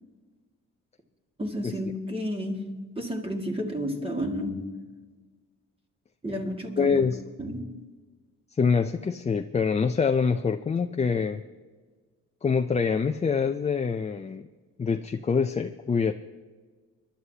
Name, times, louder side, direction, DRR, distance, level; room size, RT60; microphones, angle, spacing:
voice 1, 1.4-4.9 6.2-7.0 7.4-7.8, equal, 20° right, 1 dB, 1.9 m, -32 dB
voice 2, 6.8-7.2 8.6-11.4 12.4-14.5 14.8-16.1, left 5 dB, 20° left, 7 dB, 0.5 m, -25 dB
23.5 x 11.5 x 2.8 m, 1.4 s
cardioid pair, 90°, 30 cm